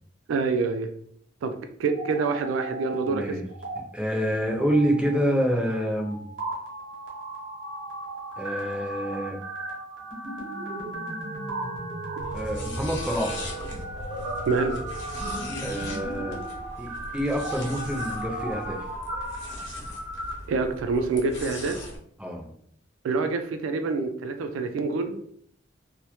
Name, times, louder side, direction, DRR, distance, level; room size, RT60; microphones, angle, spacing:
voice 1, 0.3-0.9 1.4-1.5 1.8-3.4 14.5-14.8 20.5-21.8 23.0-25.2, right 4 dB, 90° right, 8 dB, 0.3 m, -26 dB
sound 1, 1.8-3.2 3.5-3.8 4.3-20.3, right 1 dB, 75° right, 0.8 m, -36 dB
voice 2, 3.1-3.4 3.9-6.2 8.4-9.4 12.3-13.4 15.6-16.4 16.8-18.8 22.2-22.5, equal, 5° right, 0 dB, 0.3 m, -27 dB
sound 2, 12.2-22.0, left 1 dB, 65° left, 0.7 m, -39 dB
2.1 x 2.1 x 2.8 m, 0.65 s
head